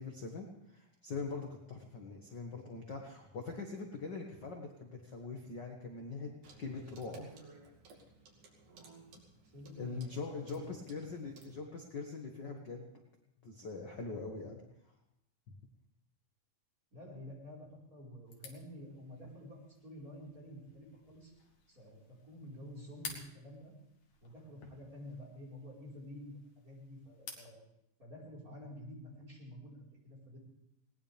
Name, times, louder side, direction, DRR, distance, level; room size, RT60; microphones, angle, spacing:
voice 1, 0.0-6.3 6.6-7.3 9.8-12.9 13.4-14.6, left 4 dB, 40° left, 1 dB, 1.7 m, -42 dB
Clock, 6.4-11.6, right 4 dB, 90° right, 4.1 m, -57 dB
voice 2, 9.5-10.8 16.9-21.3 21.7-22.0 22.2-23.7 24.2-27.6 28.0-30.4, equal, 25° right, -3 dB, 4.9 m, -50 dB
sound 1, 18.3-27.6, left 5 dB, 60° left, 3.3 m, -53 dB
20.5 x 19.0 x 3.5 m, 0.83 s
omnidirectional pair, 3.7 m